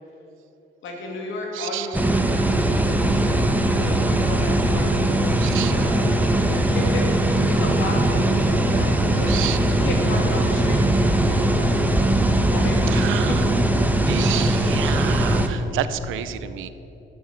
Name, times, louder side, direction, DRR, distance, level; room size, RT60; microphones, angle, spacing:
voice 1, 0.8-9.4 9.7-12.0 12.5-13.4, left 2 dB, 80° left, 0 dB, 2.9 m, -33 dB
voice 2, 1.5-1.9 5.4-5.9 9.3-9.8 12.9-13.5 14.1-16.7, right 12 dB, 85° right, 13 dB, 0.7 m, -30 dB
sound 1, 1.9-15.5, right 1 dB, 10° right, 1.1 m, -20 dB
12.0 x 9.6 x 7.4 m, 3.0 s
cardioid pair, 90°, 20 cm